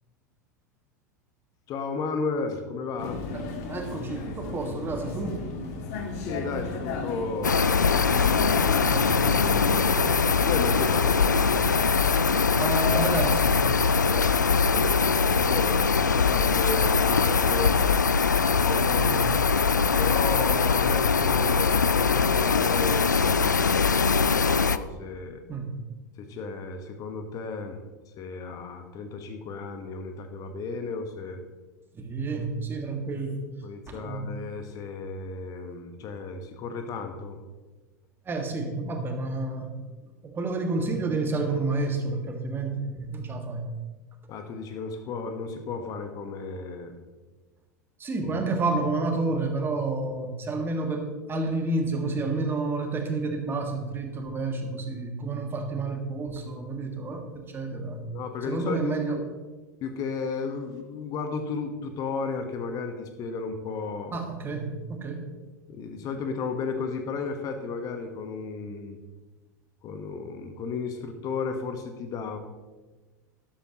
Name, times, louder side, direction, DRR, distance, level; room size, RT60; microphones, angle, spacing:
voice 1, 1.7-3.2 6.2-8.1 9.1-11.6 14.1-17.7 18.5-19.2 20.0-25.4 26.2-27.8 28.2-31.4 33.6-37.4 44.3-47.0 48.2-48.4 58.1-59.2 59.8-64.1 65.7-69.0 69.8-72.4, left 4 dB, 40° left, 6 dB, 1.3 m, -34 dB
Vehicle, 3.0-12.1, left 4 dB, 55° left, 1.8 m, -35 dB
voice 2, 3.3-5.4 8.9-9.3 12.3-13.7 19.0-19.3 25.5-25.8 31.9-33.5 33.9-34.3 38.3-39.7 40.2-43.7 48.0-58.1 58.5-59.2 64.1-65.3, right 3 dB, 25° right, 4 dB, 1.9 m, -30 dB
sound 1, 7.4-24.8, left 5 dB, 90° left, 0.4 m, -22 dB
12.5 x 11.5 x 3.0 m, 1.2 s
figure-of-eight pair, 85°, 10 cm